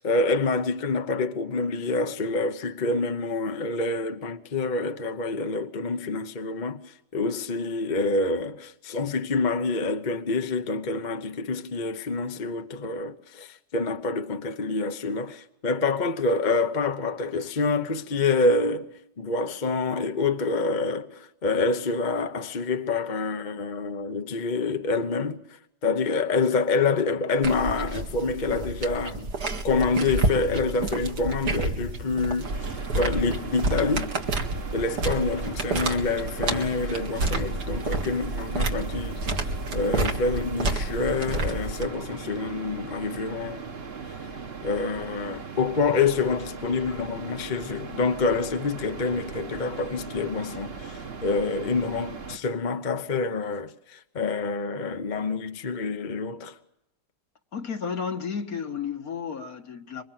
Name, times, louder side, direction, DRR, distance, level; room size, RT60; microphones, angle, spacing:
voice 1, 0.0-18.9 19.2-25.4 25.8-29.3 29.6-34.1 34.7-43.7 44.6-56.6, left 3 dB, 35° left, 1.0 m, -27 dB
sound 1, 27.4-41.9, right 2 dB, 80° right, 2.7 m, -29 dB
sound 2, 32.4-52.4, right 5 dB, 40° right, 1.5 m, -39 dB
voice 2, 57.5-60.0, left 6 dB, 60° left, 2.1 m, -32 dB
27.0 x 24.0 x 7.6 m
omnidirectional pair, 1.8 m